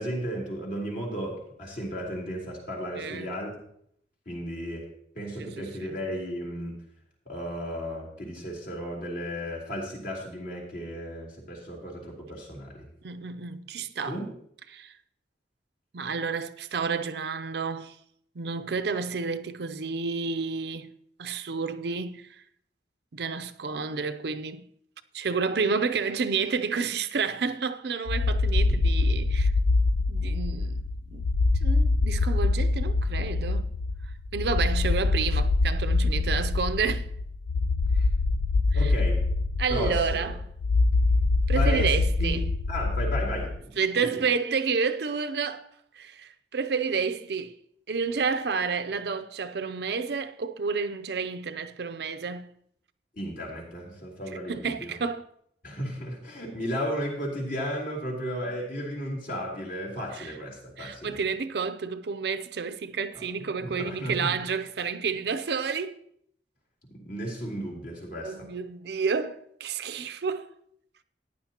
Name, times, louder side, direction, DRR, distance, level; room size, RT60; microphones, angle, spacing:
voice 1, 0.0-3.5 4.3-4.9 5.2-6.8 7.3-12.9 14.1-14.3 37.9-38.1 38.7-39.2 39.7-40.3 41.5-41.9 42.2-42.4 42.7-44.2 53.2-54.9 55.6-61.2 63.2-64.3 66.9-68.5, equal, 50° left, 3.5 m, -34 dB
voice 2, 3.0-3.3 5.4-5.5 5.8-6.0 13.0-14.2 14.7-15.0 15.9-18.0 18.4-20.9 21.2-22.4 23.1-24.7 25.1-29.5 30.1-31.3 31.6-33.7 34.3-37.1 38.7-38.9 39.6-40.3 41.5-42.5 43.8-45.7 46.0-47.6 47.9-52.5 54.5-55.3 60.1-60.3 60.8-66.0 68.2-70.5, right 5 dB, 65° right, 0.5 m, -30 dB
sound 1, 28.1-43.6, left 3 dB, 80° left, 0.5 m, -25 dB
14.5 x 9.9 x 2.9 m
head